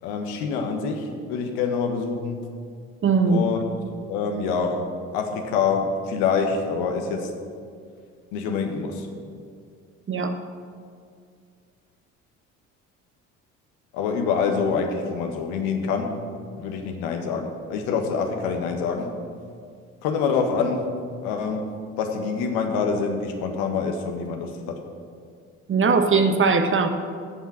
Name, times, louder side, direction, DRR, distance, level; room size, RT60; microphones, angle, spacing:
voice 1, 0.0-2.4 3.2-3.6 4.1-7.3 8.3-9.1 13.9-16.2 16.6-19.2 20.0-20.9 21.2-21.7 22.0-24.8, left 5 dB, 65° left, 4 dB, 1.5 m, -26 dB
voice 2, 3.0-3.4 10.1-10.3 25.7-26.9, right 4 dB, 30° right, 7 dB, 1.1 m, -19 dB
16.0 x 5.8 x 6.3 m, 2.2 s
hypercardioid pair, 55°, 39 cm